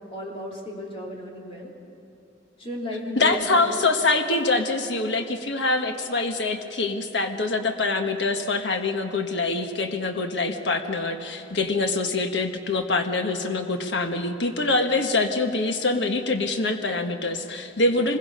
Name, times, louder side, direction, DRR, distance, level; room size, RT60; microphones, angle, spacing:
voice 1, 0.1-1.7 2.6-3.7 17.8-18.1, left 1 dB, 30° left, -2 dB, 3.4 m, -35 dB
voice 2, 3.2-18.2, left 3 dB, 70° left, 6 dB, 1.4 m, -24 dB
25.0 x 21.0 x 5.5 m, 2.9 s
head